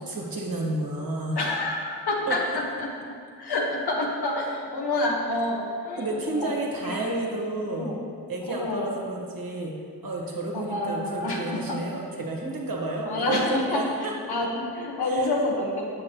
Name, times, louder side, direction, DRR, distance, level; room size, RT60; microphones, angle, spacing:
voice 1, 0.0-1.4 2.3-2.4 6.0-7.9 8.3-9.7 10.0-14.1 15.1-15.3, right 2 dB, 60° right, -1 dB, 1.3 m, -31 dB
voice 2, 1.3-2.9 3.4-6.5 6.8-7.2 7.7-8.0 8.4-8.9 10.5-11.6 13.0-16.0, left 2 dB, 70° left, -1 dB, 1.2 m, -28 dB
7.3 x 6.4 x 3.0 m, 2.2 s
cardioid pair, 40°, 40 cm